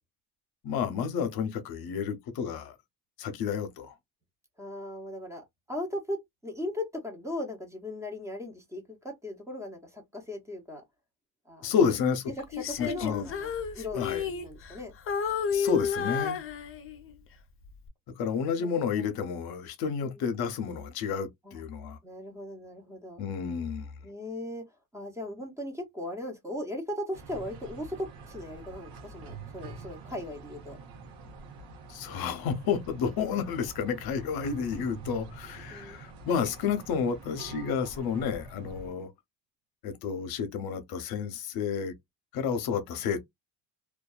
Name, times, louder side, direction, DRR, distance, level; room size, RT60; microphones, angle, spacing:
voice 1, 0.6-2.7 3.2-4.0 11.6-12.3 12.8-13.3 13.9-14.2 15.5-16.4 18.2-22.0 23.2-23.9 31.9-39.1 39.8-41.9 42.3-43.2, left 6 dB, 60° left, 0.7 m, -30 dB
voice 2, 4.6-10.8 11.5-11.7 12.6-14.9 18.6-18.9 20.0-20.2 21.4-21.6 22.0-23.2 24.0-24.7 24.9-30.8 35.7-36.0, left 1 dB, 5° right, 0.7 m, -38 dB
Female singing, 12.5-14.8 15.1-17.1 17.6-17.9, left 7 dB, 35° left, 0.4 m, -31 dB
sound 1, 27.1-38.9, right 3 dB, 70° right, 0.9 m, -46 dB
2.5 x 2.3 x 2.3 m
cardioid pair, 145°, 42 cm